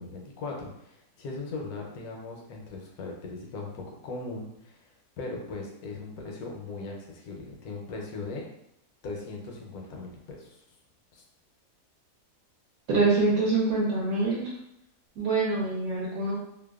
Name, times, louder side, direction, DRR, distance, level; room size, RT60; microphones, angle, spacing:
voice 1, 0.0-4.9 5.2-8.5 9.0-10.6 11.1-11.2, left 3 dB, 75° left, 0 dB, 1.1 m, -39 dB
voice 2, 12.9-14.5 15.2-16.4, right 3 dB, 70° right, -6 dB, 1.0 m, -25 dB
2.8 x 2.1 x 2.3 m, 0.82 s
omnidirectional pair, 1.6 m